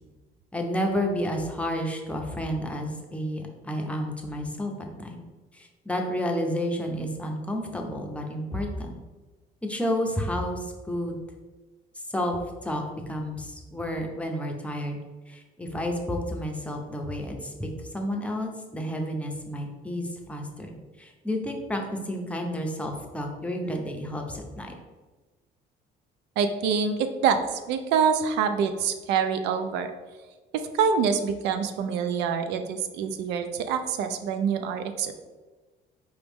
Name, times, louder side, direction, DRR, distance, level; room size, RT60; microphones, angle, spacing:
voice 1, 0.5-5.2 5.5-8.9 9.6-11.2 12.1-15.0 15.3-20.7 21.0-24.7, equal, 5° left, 1 dB, 0.7 m, -31 dB
voice 2, 26.4-29.9 30.5-35.1, right 6 dB, 90° right, 8 dB, 0.5 m, -26 dB
4.7 x 3.0 x 3.5 m, 1.3 s
cardioid pair, 110°, 17 cm